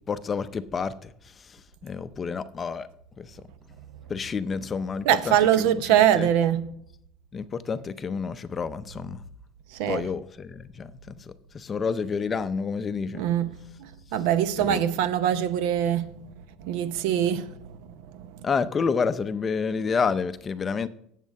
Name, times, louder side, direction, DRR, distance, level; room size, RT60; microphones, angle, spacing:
voice 1, 0.1-1.1 1.5-1.6 1.8-2.9 3.2-3.3 4.1-6.3 7.3-9.2 9.9-13.2 14.6-14.8 18.4-20.9, left 5 dB, 25° left, 0.5 m, -29 dB
voice 2, 5.0-6.7 9.7-10.1 13.1-16.1 16.6-17.8 18.1-18.4, right 10 dB, 80° right, 0.8 m, -23 dB
9.3 x 7.4 x 5.3 m
cardioid pair, 150°, 0 cm